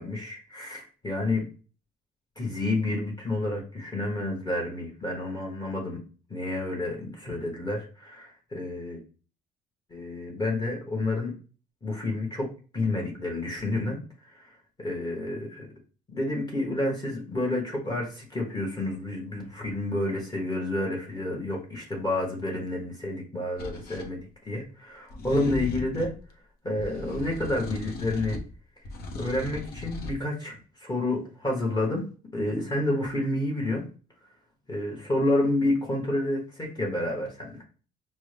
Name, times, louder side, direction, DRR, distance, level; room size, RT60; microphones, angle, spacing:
voice 1, 0.0-1.4 2.4-6.0 6.3-9.0 9.9-11.3 11.8-12.5 12.7-14.0 14.3-14.5 14.8-15.7 16.1-26.1 26.6-28.4 29.1-32.0 32.3-33.8 34.7-37.6, left 2 dB, 25° left, -2 dB, 1.1 m, -29 dB
sound 1, 23.6-24.1 25.1-26.2 26.8-28.5 28.8-30.2, left 2 dB, 65° left, 0.9 m, -37 dB
5.2 x 2.1 x 3.3 m, 0.38 s
cardioid pair, 110°, 17 cm